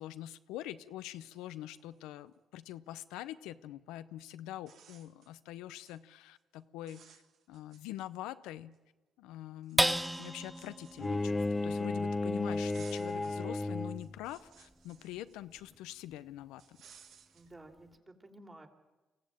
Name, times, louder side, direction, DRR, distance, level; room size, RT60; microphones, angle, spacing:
voice 1, 0.0-7.2 7.5-8.7 9.2-9.9 10.2-16.8, left 14 dB, 90° left, 13 dB, 0.7 m, -44 dB
sound 1, 1.0-1.1 1.3-2.4 3.9-4.0 4.5-5.3 5.7-6.0 6.4-6.6 6.9-8.3 8.7-8.8 9.6-11.8 12.5-13.4 13.8-15.9 16.6-17.5, right 7 dB, 75° right, 1.8 m, -60 dB
sound 2, 9.8-16.5 17.0-17.1 17.5-17.9, right 1 dB, 5° right, 0.9 m, -38 dB
Bowed string instrument, 11.0-14.2, left 2 dB, 20° left, 0.7 m, -33 dB
voice 2, 17.3-18.7, right 1 dB, 25° right, 4 dB, 3.7 m, -53 dB
24.5 x 15.0 x 8.9 m, 1.1 s
supercardioid pair, 65°, 0 cm